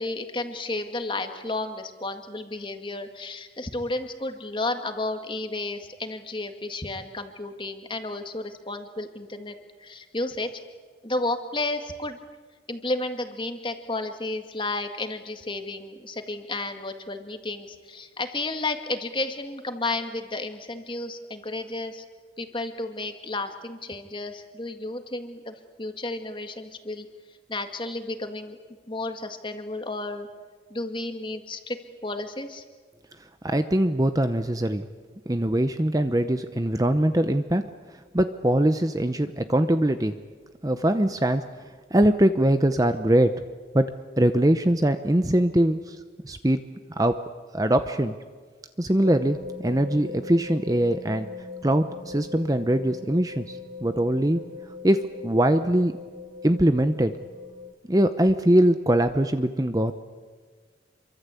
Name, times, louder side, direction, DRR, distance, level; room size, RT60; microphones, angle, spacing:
voice 1, 0.0-10.5 11.0-12.2 12.7-22.0 22.4-27.1 27.5-28.6 28.9-30.3 30.7-32.6, left 2 dB, 25° left, 6 dB, 1.9 m, -32 dB
voice 2, 33.4-34.9 35.3-37.6 38.1-40.1 40.6-41.4 41.9-43.3 43.7-43.9 44.2-46.0 46.2-46.6 47.0-47.2 47.5-48.1 48.8-51.3 51.6-54.5 54.8-56.0 56.4-57.2 57.9-59.9, right 1 dB, 20° right, 9 dB, 0.8 m, -22 dB
sound 1, 49.0-57.7, left 4 dB, 45° right, 2.5 m, -40 dB
27.0 x 24.0 x 8.4 m, 1.5 s
head